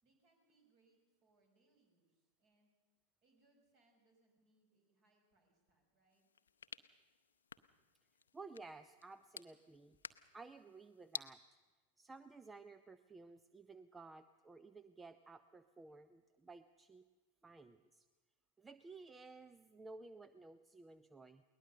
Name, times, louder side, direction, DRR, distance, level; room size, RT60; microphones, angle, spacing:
voice 1, 0.0-2.7 3.2-6.3, right 2 dB, 40° right, 3 dB, 5.3 m, -76 dB
sound 1, 6.1-11.3, left 7 dB, 70° left, 0.7 m, -53 dB
voice 2, 8.3-11.4 12.0-17.0 17.4-18.1 18.6-21.4, right 3 dB, 10° right, 12 dB, 0.6 m, -55 dB
21.5 x 19.5 x 6.6 m, 1.3 s
figure-of-eight pair, 90°, 0 cm